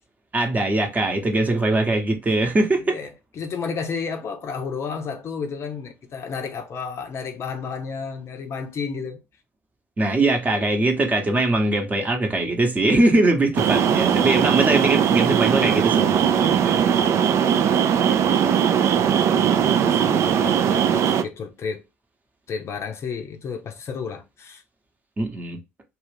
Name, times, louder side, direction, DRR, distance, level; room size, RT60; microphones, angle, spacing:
voice 1, 0.3-3.0 10.0-16.8 19.7-19.8 25.2-25.6, right 2 dB, 25° right, 0.9 m, -21 dB
voice 2, 2.8-9.2 19.0-21.8 22.5-24.6, left 5 dB, 40° left, 0.6 m, -32 dB
sound 1, 13.6-21.2, right 8 dB, 45° right, 0.4 m, -19 dB
2.5 x 2.4 x 3.4 m
hypercardioid pair, 65°, 7 cm